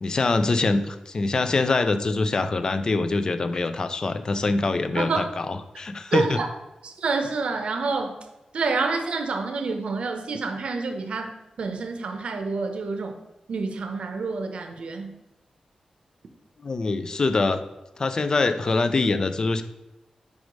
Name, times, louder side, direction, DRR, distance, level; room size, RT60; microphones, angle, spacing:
voice 1, 0.0-6.4 16.6-17.6 18.0-19.6, left 3 dB, 35° left, 10 dB, 0.4 m, -24 dB
voice 2, 5.0-5.3 6.1-6.5 6.8-8.2 8.5-11.3 11.6-13.2 13.5-15.1, right 4 dB, 65° right, 6 dB, 0.7 m, -28 dB
5.1 x 4.7 x 5.1 m, 0.98 s
wide cardioid pair, 155°, 2 cm